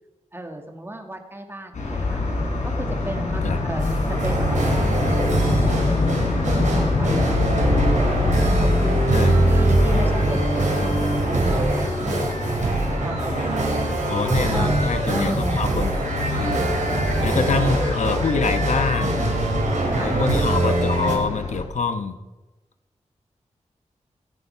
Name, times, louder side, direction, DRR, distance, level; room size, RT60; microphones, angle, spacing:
voice 1, 0.3-2.2 2.6-3.8 4.2-6.0 6.4-8.1 8.4-10.5 10.8-14.0 14.5-14.8 15.1-15.6 19.9-20.2, right 1 dB, 20° right, 4 dB, 2.1 m, -34 dB
sound 1, 1.7-21.6, left 2 dB, 90° left, 4.6 m, -25 dB
sound 2, 3.8-21.1, right 2 dB, 90° right, 4.6 m, -23 dB
voice 2, 14.1-15.9 16.2-16.6 17.2-19.3 19.9-22.2, left 4 dB, 75° left, 9 dB, 1.1 m, -25 dB
25.5 x 8.6 x 5.8 m, 1.1 s
wide cardioid pair, 130°, 12 cm